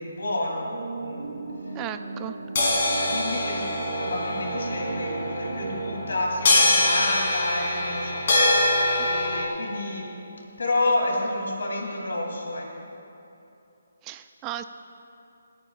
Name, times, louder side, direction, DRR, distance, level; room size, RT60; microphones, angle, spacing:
voice 1, 0.0-1.4 2.4-2.6 2.9-8.3 9.0-10.1 10.6-12.7, left 2 dB, 80° left, -1 dB, 3.2 m, -29 dB
sound 1, 0.5-5.9, right 3 dB, 80° right, 1.7 m, -36 dB
voice 2, 1.7-2.3 14.0-14.6, right 12 dB, 15° right, 9 dB, 0.4 m, -35 dB
sound 2, 2.6-9.5, left 2 dB, 50° left, 3.3 m, -24 dB
28.5 x 9.6 x 2.5 m, 2.8 s
hypercardioid pair, 165°, 0 cm